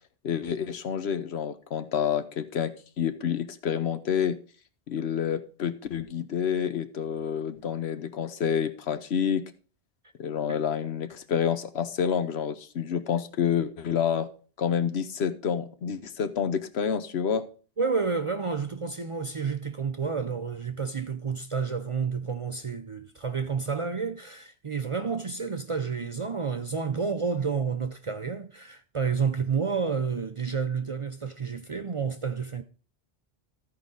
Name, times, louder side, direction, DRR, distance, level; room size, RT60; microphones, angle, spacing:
voice 1, 0.2-4.4 4.9-9.4 10.2-14.3 14.6-17.4, left 8 dB, 80° left, 1.1 m, -28 dB
voice 2, 17.8-32.6, right 5 dB, 45° right, 0.4 m, -30 dB
14.5 x 4.9 x 3.9 m
omnidirectional pair, 1.1 m